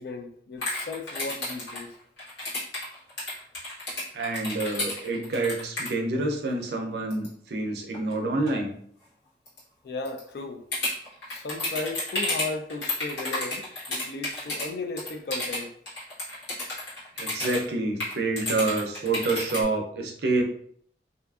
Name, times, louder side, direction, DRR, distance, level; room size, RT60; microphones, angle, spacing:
voice 1, 0.0-1.9 9.8-10.6 11.3-15.7, left 3 dB, 60° left, 0.3 m, -35 dB
sound 1, 0.6-5.9 7.1-7.3 7.9-8.1 8.5-8.6 9.5-9.6 10.1-10.2 10.7-14.7 15.0-17.6 18.0-19.6, left 1 dB, 90° left, 1.2 m, -31 dB
voice 2, 4.1-8.7 17.2-20.4, right 2 dB, 70° right, 0.4 m, -27 dB
2.6 x 2.4 x 2.3 m
head